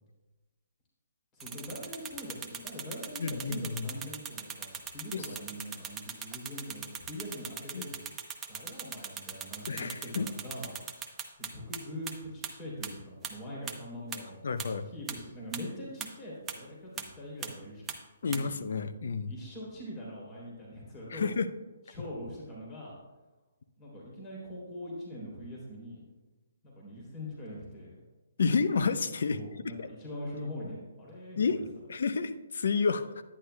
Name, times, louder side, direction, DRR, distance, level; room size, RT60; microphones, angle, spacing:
voice 1, 1.3-8.0 8.5-10.7 11.4-14.4 14.9-18.0 18.2-18.6 19.3-21.3 21.9-22.9 23.8-26.0 26.6-28.0 29.3-31.6, equal, 20° left, -5 dB, 3.1 m, -43 dB
sound 1, 1.4-11.8 12.1-12.2 12.4-12.5 12.8-12.9 13.2-13.3 13.7-13.8 14.1-14.2 14.6-14.7 15.1-15.2 15.5-15.6 16.0-16.1 16.5-16.6 17.0-17.1 17.4-17.5 17.9-18.0 18.3-18.4, right 7 dB, 15° right, 0.7 m, -38 dB
voice 2, 3.2-3.9 5.1-5.3 7.7-7.8 9.7-10.3 14.4-14.9 18.2-19.3 21.1-21.5 28.4-29.4 29.8-29.9 31.4-33.2, left 5 dB, 65° left, 11 dB, 0.6 m, -30 dB
11.0 x 9.7 x 2.2 m, 1.1 s
figure-of-eight pair, 140°, 0 cm